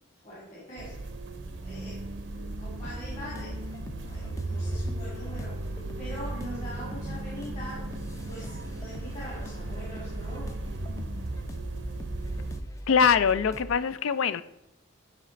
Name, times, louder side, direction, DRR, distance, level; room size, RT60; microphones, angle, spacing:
voice 1, 0.2-1.0 1.5-3.6 4.0-5.6 6.0-7.9 8.2-10.6, equal, 35° left, 1.9 m, -43 dB
sound 1, 0.8-12.6, right 2 dB, 60° right, 0.6 m, -36 dB
sound 2, 2.8-13.8, left 1 dB, 15° left, 0.4 m, -43 dB
voice 2, 12.9-14.4, left 6 dB, 80° left, 0.4 m, -23 dB
8.9 x 3.3 x 4.0 m
head